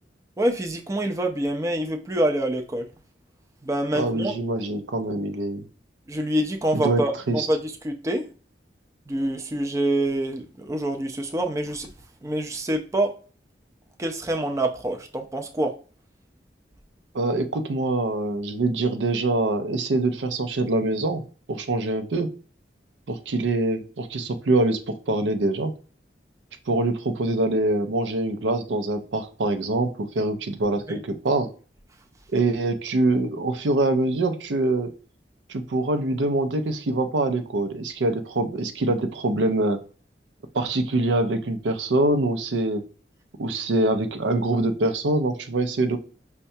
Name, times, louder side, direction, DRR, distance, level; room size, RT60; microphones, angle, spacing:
voice 1, 0.4-2.9 3.6-4.4 6.1-8.3 9.1-11.9 12.2-13.2 14.0-15.8 30.9-31.0, right 1 dB, 15° right, 0.4 m, -26 dB
voice 2, 3.9-5.6 6.7-7.0 7.3-7.5 17.1-21.2 21.5-22.3 23.1-25.7 26.7-31.5 32.3-34.9 35.5-39.8 40.5-42.8 43.4-46.0, right 2 dB, 85° right, 0.5 m, -24 dB
5.5 x 2.2 x 2.6 m
head